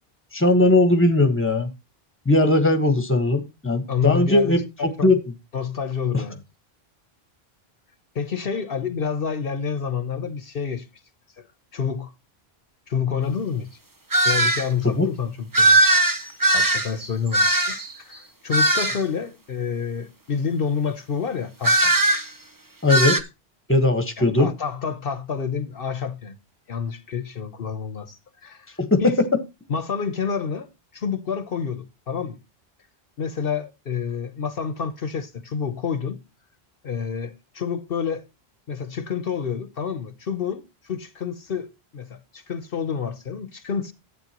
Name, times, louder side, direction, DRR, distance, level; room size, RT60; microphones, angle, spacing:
voice 1, 0.3-1.7 2.2-5.2 14.8-15.1 22.8-23.2 23.7-24.5 28.8-29.0, left 2 dB, 10° left, 1.4 m, -19 dB
voice 2, 3.9-5.1 5.5-6.4 8.1-10.9 11.4-11.5 11.7-12.1 12.9-13.8 14.2-15.8 16.5-21.9 24.2-26.4 26.7-29.2 29.7-30.7 30.9-32.4 33.2-36.2 36.8-38.2 38.7-43.9, left 6 dB, 65° left, 1.0 m, -28 dB
sound 1, 14.1-14.7 15.5-17.9 18.5-19.0 21.6-22.3 22.9-23.2, right 1 dB, 20° right, 0.9 m, -19 dB
12.0 x 8.6 x 2.9 m
omnidirectional pair, 1.0 m